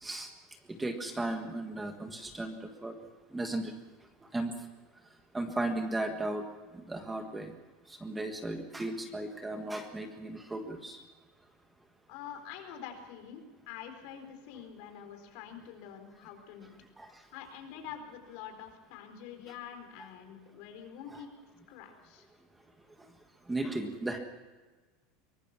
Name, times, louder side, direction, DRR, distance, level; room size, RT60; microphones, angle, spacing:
voice 1, 0.0-0.3 0.7-2.9 3.3-3.7 4.3-4.5 5.3-6.4 6.7-7.5 7.9-11.0 17.0-17.1 21.1-21.2 23.5-24.2, right 2 dB, 10° right, 5 dB, 1.6 m, -35 dB
voice 2, 12.1-16.7 17.3-21.3 21.7-22.3, left 8 dB, 60° left, 6 dB, 4.3 m, -46 dB
23.5 x 19.0 x 6.1 m, 1.3 s
supercardioid pair, 155°, 0 cm